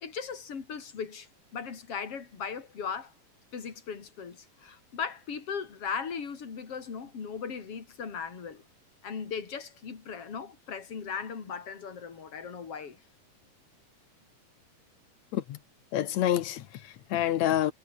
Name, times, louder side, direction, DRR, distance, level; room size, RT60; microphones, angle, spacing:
voice 1, 0.0-3.1 3.5-8.6 9.0-13.0, left 6 dB, 45° left, 4.2 m, -38 dB
voice 2, 15.9-17.7, left 12 dB, 65° left, 2.2 m, -28 dB
omnidirectional pair, 3.7 m